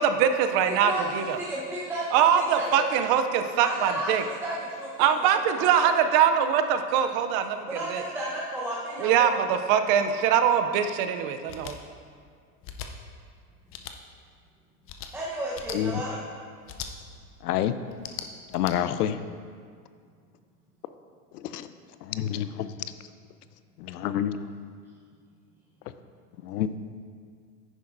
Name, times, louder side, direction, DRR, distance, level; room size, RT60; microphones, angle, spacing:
voice 1, 0.0-1.4 2.1-4.2 5.0-8.0 9.0-11.8, right 8 dB, 35° right, 8 dB, 0.4 m, -23 dB
voice 2, 0.6-3.0 3.6-5.2 5.5-5.9 7.7-9.5 15.1-16.2, right 1 dB, 5° right, -7 dB, 0.8 m, -33 dB
sound 1, 11.5-11.8 12.6-12.9 13.7-14.0 14.9-15.1 15.5-15.8 16.7-16.9 17.9-18.7, left 9 dB, 30° left, 0.5 m, -39 dB
voice 3, 17.4-17.7 18.5-19.2 21.3-21.7 22.1-22.7 23.8-24.3 26.4-26.7, left 11 dB, 80° left, 12 dB, 0.6 m, -28 dB
9.8 x 9.8 x 2.5 m, 2.1 s
supercardioid pair, 135°, 46 cm